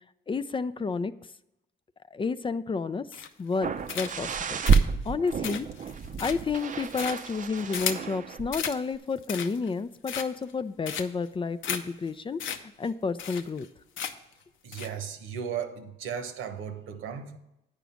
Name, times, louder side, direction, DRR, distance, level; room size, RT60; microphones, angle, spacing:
voice 1, 0.3-1.1 2.1-3.0 3.4-4.6 5.1-5.7 6.2-12.4 12.8-13.7, left 4 dB, 25° left, 0.4 m, -30 dB
sound 1, 3.1-3.5 3.9-4.3 4.7-8.1 8.5-8.8 9.2-9.7 10.0-10.5 10.9-11.3 11.6-11.8 12.1-12.2 12.4-12.6 12.8-12.9 13.2-13.7 14.0-14.3 14.7-14.9, left 8 dB, 80° left, 0.8 m, -34 dB
sound 2, 3.6-8.6 8.9-9.0, right 5 dB, 40° right, 0.6 m, -29 dB
voice 2, 14.6-17.4, right 8 dB, 90° right, 1.1 m, -36 dB
9.1 x 5.0 x 7.0 m
cardioid pair, 90°, 20 cm